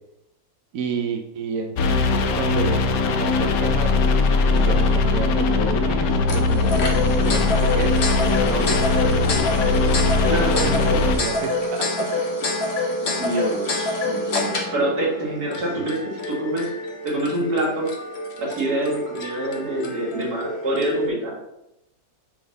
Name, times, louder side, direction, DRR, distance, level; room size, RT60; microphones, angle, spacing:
voice 1, 0.7-4.0 4.5-8.0 8.4-10.0 10.3-12.3 15.8-15.9, right 5 dB, 65° right, 4 dB, 1.0 m, -30 dB
sound 1, 1.8-11.2, left 3 dB, 70° left, 1.2 m, -20 dB
sound 2, 6.3-21.1, left 2 dB, 45° left, 1.2 m, -27 dB
voice 2, 10.3-10.6 10.9-11.1 13.0-16.7 17.0-17.9 18.4-21.4, right 1 dB, 80° right, -3 dB, 2.5 m, -26 dB
9.3 x 3.8 x 4.0 m, 0.87 s
omnidirectional pair, 1.6 m